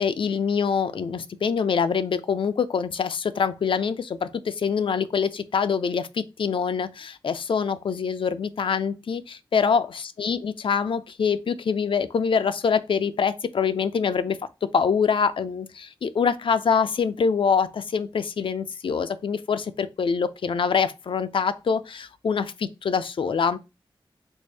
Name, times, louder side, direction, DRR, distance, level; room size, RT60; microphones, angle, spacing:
voice 1, 0.0-23.6, left 6 dB, 80° left, 0.4 m, -25 dB
3.2 x 2.6 x 3.2 m
wide cardioid pair, 75°, 9 cm